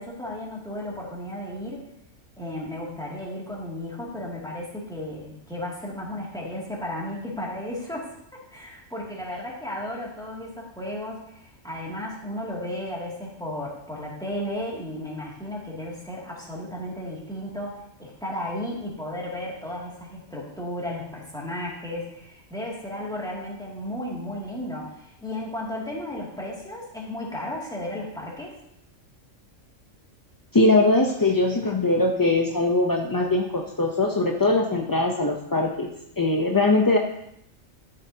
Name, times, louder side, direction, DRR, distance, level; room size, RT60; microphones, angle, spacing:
voice 1, 0.0-1.9 2.4-8.1 8.5-28.5, left 1 dB, 5° left, -5 dB, 2.3 m, -34 dB
voice 2, 30.5-35.9 36.2-37.0, left 2 dB, 25° left, 0 dB, 0.4 m, -21 dB
13.0 x 7.2 x 2.8 m, 0.79 s
omnidirectional pair, 1.3 m